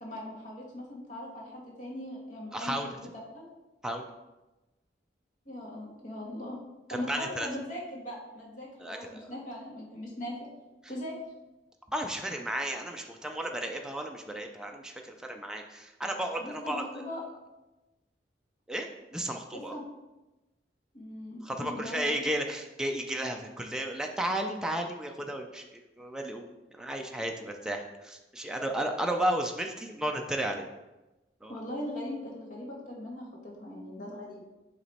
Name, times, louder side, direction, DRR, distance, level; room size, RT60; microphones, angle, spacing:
voice 1, 0.0-3.1 3.3-3.4 5.4-6.6 6.9-10.3 10.9-11.1 16.4-17.2 19.5-19.8 20.9-22.3 31.5-34.4, left 1 dB, 45° left, -4 dB, 1.6 m, -40 dB
voice 2, 2.5-2.9 3.8-4.1 6.9-7.5 8.8-9.3 11.9-17.1 18.7-19.8 21.4-26.5 26.7-30.6 31.4-31.6, right 1 dB, 5° right, 2 dB, 0.3 m, -33 dB
8.0 x 3.0 x 4.1 m, 1.1 s
head